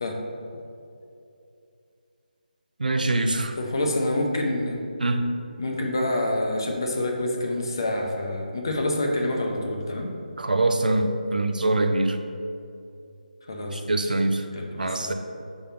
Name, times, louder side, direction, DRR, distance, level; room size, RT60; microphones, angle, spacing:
voice 1, 2.8-3.6 5.0-5.3 10.4-12.2 13.7-14.4 14.8-15.1, right 2 dB, 70° right, 6 dB, 0.6 m, -24 dB
voice 2, 3.6-4.8 5.6-10.1 13.5-14.1 14.5-15.1, left 1 dB, 30° left, 1 dB, 0.6 m, -27 dB
5.2 x 3.6 x 5.7 m, 2.6 s
figure-of-eight pair, 180°, 5 cm